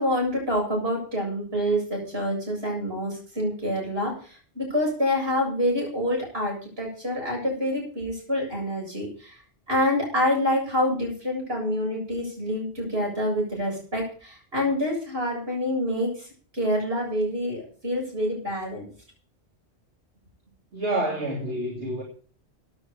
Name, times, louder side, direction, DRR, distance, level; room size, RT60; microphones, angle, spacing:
voice 1, 0.0-9.4 9.7-16.3 16.5-18.9, equal, 60° right, -1 dB, 8.0 m, -27 dB
voice 2, 20.7-22.0, right 1 dB, 80° right, -2 dB, 3.3 m, -28 dB
16.0 x 9.8 x 5.1 m, 0.41 s
omnidirectional pair, 1.1 m